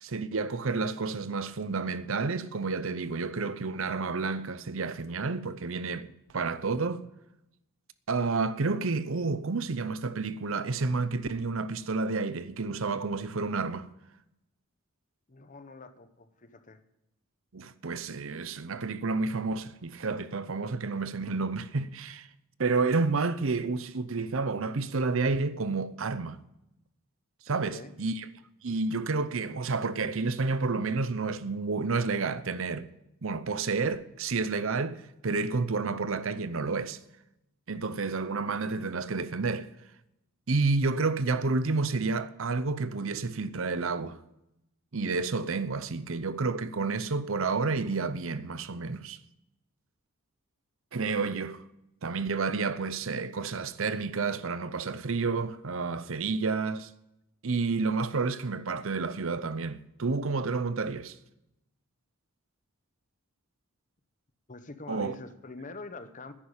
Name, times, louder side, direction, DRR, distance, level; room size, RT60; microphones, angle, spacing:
voice 1, 0.0-6.1 6.3-7.0 8.1-13.9 17.5-22.3 22.6-26.4 27.5-28.3 28.6-32.9 33.2-37.0 37.7-39.7 40.5-44.2 44.9-49.2 50.9-51.6 52.0-56.9 57.4-61.1 64.9-65.1, right 4 dB, 65° right, 0.7 m, -30 dB
voice 2, 15.3-16.8 27.5-27.9 64.5-66.3, left 3 dB, 35° left, 0.9 m, -45 dB
10.5 x 10.0 x 8.7 m
head